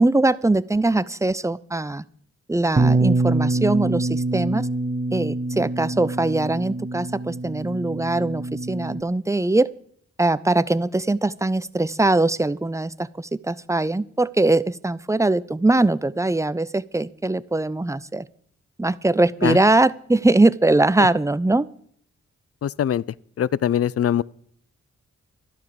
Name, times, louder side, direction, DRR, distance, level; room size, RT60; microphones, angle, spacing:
voice 1, 0.0-2.0 2.5-4.7 5.1-9.7 10.2-18.2 18.8-21.7, right 2 dB, 10° right, 0.6 m, -21 dB
Bass guitar, 2.8-9.0, right 2 dB, 30° right, 1.1 m, -25 dB
voice 2, 22.6-23.0 23.4-24.2, left 10 dB, 50° left, 0.5 m, -22 dB
12.0 x 11.5 x 6.9 m
cardioid pair, 65°, 30 cm